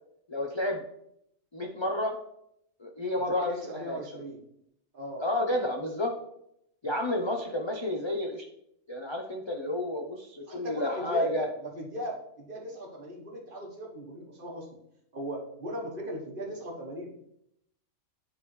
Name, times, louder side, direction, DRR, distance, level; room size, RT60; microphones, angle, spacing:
voice 1, 0.3-0.8 1.5-2.1 2.8-4.0 5.2-6.1 6.8-8.4 8.9-11.5, left 1 dB, 40° left, 1 dB, 0.4 m, -30 dB
voice 2, 3.1-4.4 4.9-5.2 6.8-6.9 10.5-14.7 15.1-17.1, equal, 45° right, -1 dB, 1.4 m, -38 dB
10.0 x 3.5 x 3.1 m, 0.75 s
omnidirectional pair, 1.4 m